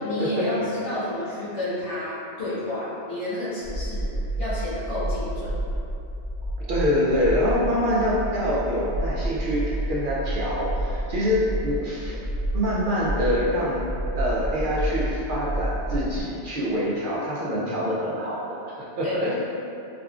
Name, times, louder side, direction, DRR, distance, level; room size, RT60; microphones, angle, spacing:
voice 1, 0.0-4.1 4.4-5.6 19.0-19.1, left 1 dB, 80° left, -11 dB, 1.5 m, -30 dB
sound 1, 3.6-16.2, right 1 dB, 50° left, 0.5 m, -30 dB
voice 2, 6.7-12.2 12.5-13.8 14.1-19.3, equal, 60° right, -6 dB, 0.6 m, -25 dB
4.8 x 2.3 x 2.3 m, 2.7 s
omnidirectional pair, 1.2 m